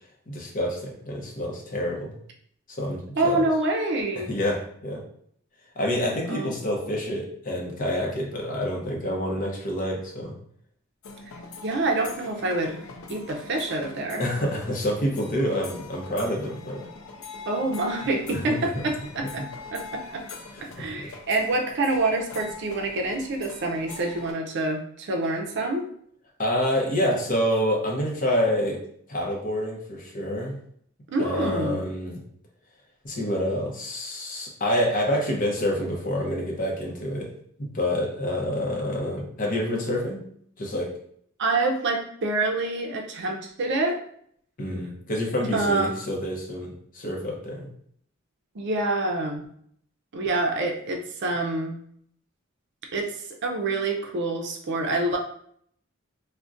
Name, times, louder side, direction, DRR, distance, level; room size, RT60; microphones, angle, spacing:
voice 1, 0.3-2.2 2.7-3.4 4.2-5.0 5.8-10.3 14.2-16.9 18.3-18.5 20.5-20.9 26.4-28.8 29.1-30.6 31.2-32.2 33.0-37.3 37.6-40.2 40.6-40.9 44.6-47.7, equal, 40° left, -1 dB, 0.7 m, -27 dB
voice 2, 3.2-4.3 6.3-6.5 11.6-14.3 17.5-19.5 19.7-20.2 20.6-25.8 31.1-31.8 41.4-44.0 45.5-46.0 48.5-49.4 50.1-51.8 52.9-55.2, right 2 dB, 55° right, 2 dB, 0.5 m, -26 dB
sound 1, 11.0-24.3, left 4 dB, 80° left, 0.5 m, -42 dB
3.7 x 2.1 x 2.5 m, 0.65 s
head